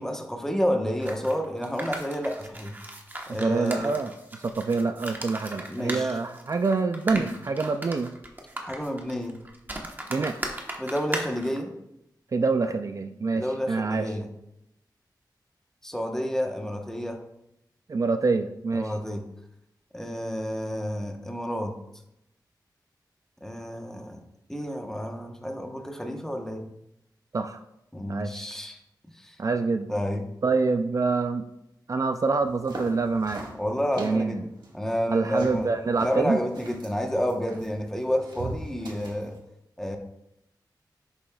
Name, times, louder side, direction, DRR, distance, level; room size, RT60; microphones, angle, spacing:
voice 1, 0.0-2.7 3.3-4.0 5.7-6.2 7.1-7.3 8.6-9.4 10.8-11.7 13.3-14.3 15.8-17.2 18.7-19.2 19.9-21.7 23.4-24.2 24.5-26.7 27.9-28.8 29.1-29.4 29.9-30.3 33.6-34.4 34.7-35.7 36.0-39.4 39.8-40.0, equal, 5° left, 3 dB, 1.0 m, -30 dB
sound 1, 1.0-11.6, right 1 dB, 25° right, 1.1 m, -37 dB
voice 2, 3.4-4.1 4.4-8.1 10.1-10.4 12.3-14.1 17.9-18.9 27.3-27.6 28.1-28.5 29.4-29.9 30.4-31.5 31.9-33.4 34.0-34.4 35.1-36.4, right 4 dB, 45° right, 8 dB, 0.4 m, -26 dB
sound 2, 32.4-39.4, right 2 dB, 75° right, 1.8 m, -42 dB
10.5 x 7.1 x 2.3 m, 0.83 s
wide cardioid pair, 115°, 8 cm